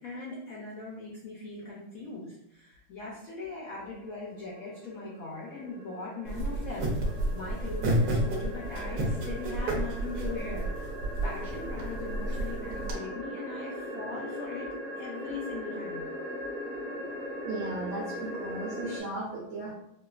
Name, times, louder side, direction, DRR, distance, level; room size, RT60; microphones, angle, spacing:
voice 1, 0.0-6.9 7.3-10.8 11.2-14.7 15.0-16.0, left 3 dB, 80° left, -4 dB, 0.7 m, -40 dB
sound 1, 3.5-19.0, equal, 35° right, 0.7 m, -40 dB
sound 2, 6.3-12.9, right 1 dB, 65° right, 1.0 m, -31 dB
voice 2, 17.4-19.7, right 2 dB, 85° right, -6 dB, 0.6 m, -36 dB
4.4 x 2.2 x 2.3 m, 0.81 s
omnidirectional pair, 2.2 m